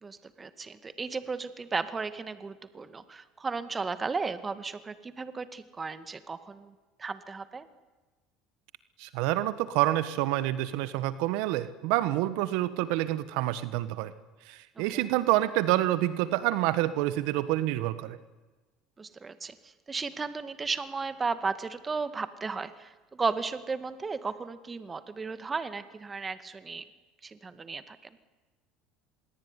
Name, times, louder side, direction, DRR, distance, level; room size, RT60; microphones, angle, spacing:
voice 1, 0.0-6.7 7.0-7.7 14.8-15.1 19.0-26.9 27.2-28.0, right 4 dB, 20° right, 13 dB, 2.0 m, -35 dB
voice 2, 9.0-14.1 14.4-18.2, right 15 dB, 75° right, 14 dB, 1.4 m, -27 dB
26.5 x 22.0 x 9.9 m, 1.2 s
supercardioid pair, 105°, 0 cm